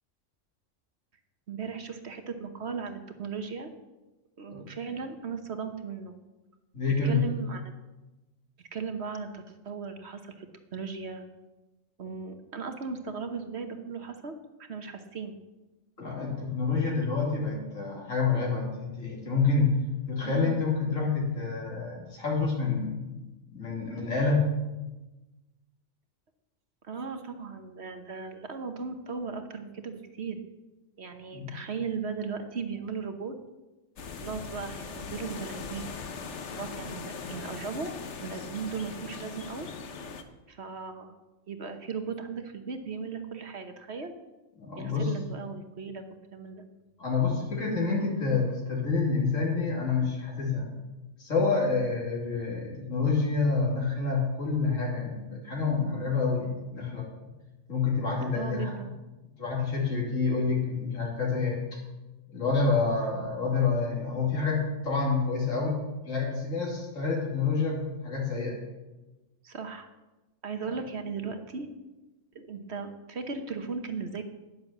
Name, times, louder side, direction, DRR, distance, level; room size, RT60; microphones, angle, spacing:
voice 1, 1.5-3.7 4.4-6.1 7.0-7.7 8.7-11.2 12.0-15.4 20.2-20.6 26.8-30.4 31.0-33.3 34.2-35.9 36.3-39.7 40.5-41.1 41.5-44.1 44.8-46.0 46.3-46.6 58.3-58.9 69.4-69.9 70.4-71.7 72.3-74.2, right 5 dB, 55° right, 7 dB, 1.3 m, -37 dB
voice 2, 6.7-7.2 16.0-19.8 20.1-23.1 23.5-24.5 31.3-31.5 44.6-45.1 47.0-50.7 51.2-57.3 57.7-58.7 59.4-61.8 62.3-68.6, left 4 dB, 85° left, -3 dB, 3.2 m, -28 dB
sound 1, 34.0-40.2, left 5 dB, 65° left, 1.3 m, -40 dB
10.5 x 10.0 x 7.3 m, 1.1 s
omnidirectional pair, 1.3 m